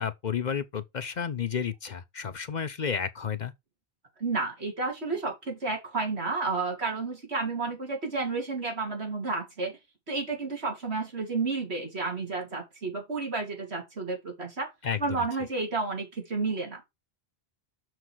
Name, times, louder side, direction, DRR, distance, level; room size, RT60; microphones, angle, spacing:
voice 1, 0.0-3.5 14.8-15.3, left 7 dB, 50° left, 0.7 m, -31 dB
voice 2, 4.2-9.8 10.1-14.7 15.0-16.8, right 3 dB, 80° right, 3.3 m, -31 dB
6.6 x 6.1 x 4.7 m
omnidirectional pair, 1.1 m